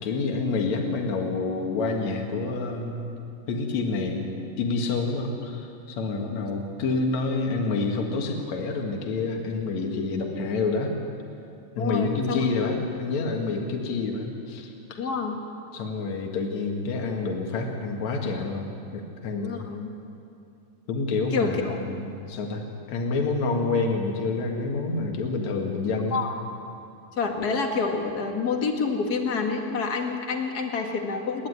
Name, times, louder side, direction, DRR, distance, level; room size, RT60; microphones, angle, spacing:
voice 1, 0.0-3.1 3.5-4.3 4.6-10.9 11.7-15.0 15.7-18.7 18.9-19.6 20.9-26.2, left 3 dB, 60° left, 2 dB, 3.1 m, -28 dB
voice 2, 6.1-6.4 11.8-12.4 15.0-15.4 19.4-19.9 21.3-21.8 26.1-26.3 27.2-31.5, left 4 dB, 35° left, 3 dB, 1.7 m, -28 dB
29.5 x 11.0 x 9.6 m, 2.6 s
omnidirectional pair, 3.9 m